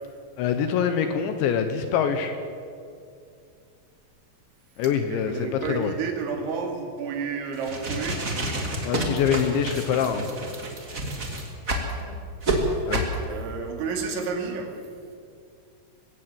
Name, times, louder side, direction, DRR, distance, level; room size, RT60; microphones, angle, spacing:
voice 1, 0.4-2.4 4.8-6.0 8.8-10.3 12.9-13.1, left 7 dB, 75° left, 8 dB, 3.1 m, -25 dB
voice 2, 5.1-8.2 12.0-12.2 12.6-12.9 13.3-14.7, right 5 dB, 70° right, 3 dB, 4.8 m, -31 dB
sound 1, 7.5-11.9 12.4-12.6 12.9-13.1, right 2 dB, 35° right, 1.3 m, -29 dB
22.0 x 16.5 x 7.8 m, 2.4 s
omnidirectional pair, 5.7 m